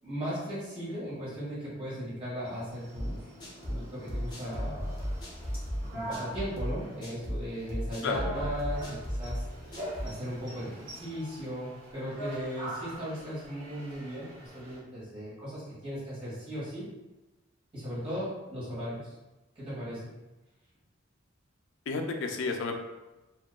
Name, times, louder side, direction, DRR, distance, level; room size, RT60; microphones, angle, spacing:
voice 1, 0.0-3.2 3.6-5.0 5.9-9.4 10.0-16.8 17.7-19.1 19.5-20.1, equal, 30° right, -10 dB, 1.5 m, -37 dB
sound 1, 2.4-14.8, right 1 dB, 45° right, 0.7 m, -44 dB
sound 2, 3.0-10.2, equal, 20° left, 0.6 m, -35 dB
voice 2, 8.0-8.3 21.9-22.8, left 4 dB, 70° left, 4 dB, 0.3 m, -31 dB
2.8 x 2.2 x 2.2 m, 1.1 s
head